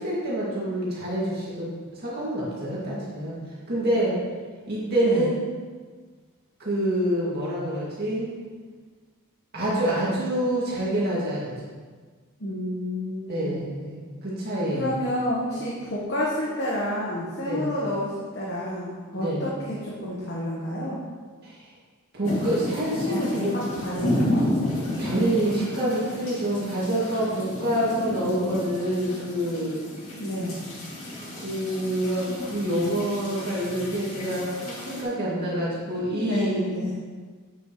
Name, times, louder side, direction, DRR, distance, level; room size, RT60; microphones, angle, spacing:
voice 1, 0.0-3.3 3.7-4.2 4.7-5.3 6.6-8.3 9.5-11.5 13.3-14.9 17.5-17.7 19.1-19.5 21.4-21.6 22.1-23.5 25.0-29.8 31.4-36.6, right 1 dB, 50° right, -7 dB, 2.1 m, -27 dB
voice 2, 5.0-5.3 12.4-13.5 14.7-21.0 23.0-24.5 30.1-30.6 36.0-36.9, equal, 50° left, -6 dB, 1.2 m, -29 dB
sound 1, 22.2-35.0, left 1 dB, 70° left, 2.2 m, -32 dB
8.8 x 7.1 x 3.1 m, 1.5 s
head